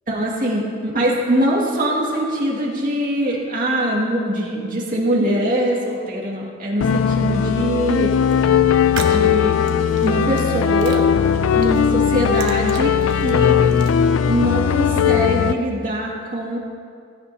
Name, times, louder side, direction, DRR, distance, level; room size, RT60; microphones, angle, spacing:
voice 1, 0.1-8.6 9.0-9.6 10.0-11.1 11.5-13.7 14.3-16.6, right 1 dB, 40° right, -3 dB, 2.2 m, -22 dB
sound 1, 6.8-15.6, left 7 dB, 70° left, 0.4 m, -18 dB
sound 2, 7.9-8.3 8.8-10.4 10.8-11.8 12.2-13.9, right 6 dB, 60° right, 1.2 m, -36 dB
16.5 x 16.0 x 2.8 m, 2.3 s
head